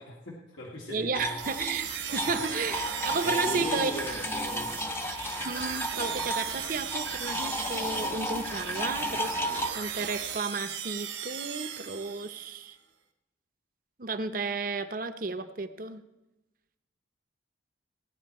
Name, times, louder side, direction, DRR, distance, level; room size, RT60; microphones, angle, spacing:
voice 1, 0.0-1.4 3.2-4.7, equal, 90° left, -4 dB, 1.9 m, -38 dB
voice 2, 0.9-3.9 5.4-12.8 14.0-16.0, right 4 dB, 45° right, 10 dB, 0.7 m, -33 dB
sound 1, 1.1-9.7, equal, 10° left, 0.6 m, -33 dB
sound 2, 1.4-12.5, right 8 dB, 75° right, 1.3 m, -37 dB
18.0 x 9.9 x 4.3 m, 0.99 s
head